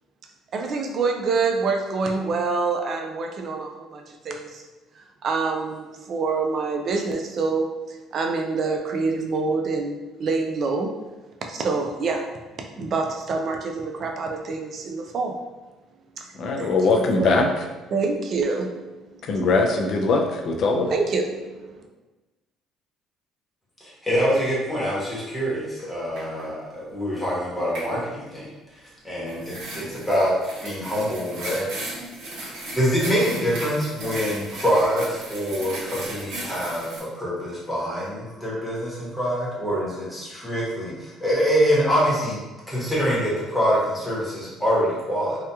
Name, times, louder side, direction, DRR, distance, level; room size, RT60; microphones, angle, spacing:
voice 1, 0.5-4.6 5.0-11.0 11.4-12.3 12.6-15.4 16.2-16.3 16.6-17.3 17.9-19.5 20.7-21.9, right 4 dB, 50° right, 3 dB, 0.4 m, -27 dB
voice 2, 16.3-17.5 19.3-21.0, left 3 dB, 55° left, 3 dB, 0.4 m, -21 dB
voice 3, 23.8-28.5 29.0-30.3 30.6-31.7 32.4-42.4 42.7-45.4, equal, 5° left, -7 dB, 1.0 m, -25 dB
sound 1, 25.8-25.9 26.2-26.5 27.7-27.9 29.3-37.0, right 1 dB, 85° right, 1.0 m, -36 dB
2.8 x 2.2 x 2.3 m, 1.1 s
cardioid pair, 110°, 0 cm